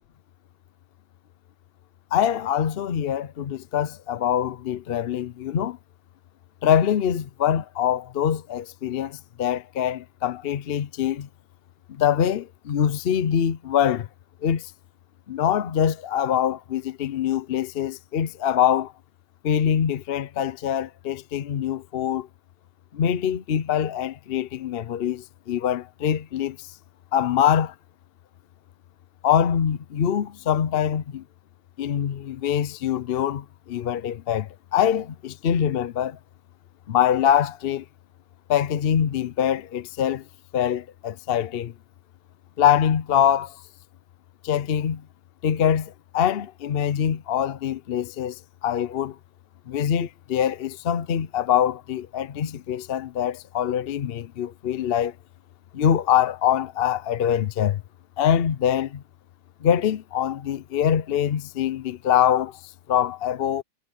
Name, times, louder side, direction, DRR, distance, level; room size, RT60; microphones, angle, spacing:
voice 1, 2.1-5.8 6.6-11.3 11.9-14.1 14.4-14.7 15.3-18.9 19.4-22.3 22.9-26.7 27.1-27.7 29.2-31.2 31.8-36.2 36.9-37.8 38.5-40.2 40.5-41.7 42.6-43.6 44.4-45.0 45.4-49.2 49.7-55.1 55.7-57.8 58.2-59.0 59.6-62.6 62.9-63.6, left 9 dB, 55° left, 0.7 m, -24 dB
omnidirectional pair, 1.6 m